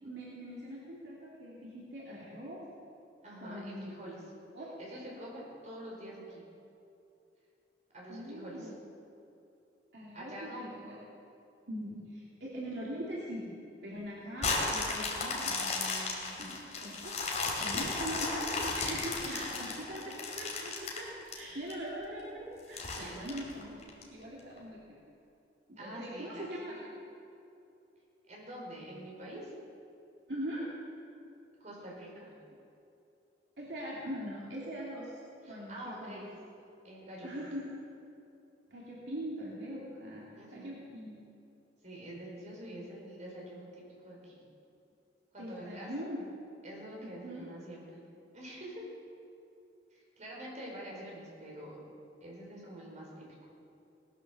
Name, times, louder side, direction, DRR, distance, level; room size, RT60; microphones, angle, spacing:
voice 1, 0.0-2.6 3.4-4.0 4.5-5.0 8.1-8.7 9.9-11.0 11.7-13.5 13.8-17.2 17.6-21.1 21.3-23.8 24.1-24.8 25.7-26.9 30.3-30.6 33.6-35.2 35.5-36.3 37.2-37.8 38.7-41.2 45.4-46.3 47.2-47.5, equal, 65° right, -6 dB, 2.8 m, -42 dB
voice 2, 3.2-4.2 4.8-6.4 7.9-8.7 10.1-10.7 19.2-19.7 22.9-23.3 25.8-26.7 28.3-29.5 31.6-32.3 35.4-36.3 36.8-37.4 40.3-40.7 41.8-44.4 45.3-45.9 46.6-48.0 48.3-48.8 49.9-51.8 52.2-53.2, right 1 dB, 40° right, -3 dB, 4.9 m, -46 dB
sound 1, 14.4-21.7 22.2-22.3 22.7-24.0 24.6-24.7, left 3 dB, 40° left, 3.0 m, -34 dB
18.5 x 10.5 x 6.8 m, 2.7 s
head